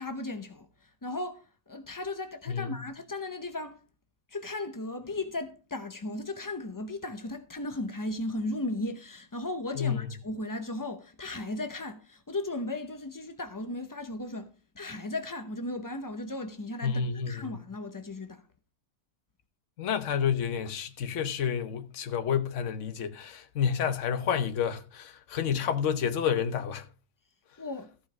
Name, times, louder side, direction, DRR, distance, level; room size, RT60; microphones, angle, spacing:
voice 1, 0.0-3.8 4.3-18.4 27.6-27.9, left 2 dB, 30° left, 0.3 m, -36 dB
voice 2, 2.5-2.8 9.8-10.0 16.8-17.6 19.8-26.9, left 7 dB, 55° left, 1.2 m, -29 dB
14.5 x 5.0 x 6.0 m
omnidirectional pair, 1.6 m